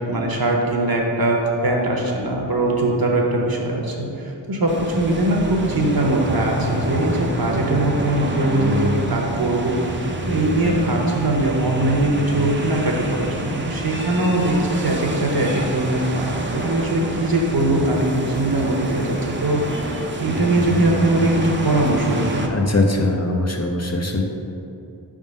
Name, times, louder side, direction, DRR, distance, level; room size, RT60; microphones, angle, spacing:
voice 1, 0.1-22.5, right 1 dB, 55° right, 0 dB, 0.9 m, -21 dB
sound 1, 4.7-22.5, right 1 dB, 25° right, 0.5 m, -27 dB
voice 2, 22.5-24.2, left 2 dB, 35° left, 1 dB, 0.5 m, -21 dB
5.0 x 3.7 x 5.2 m, 2.7 s
wide cardioid pair, 70°, 44 cm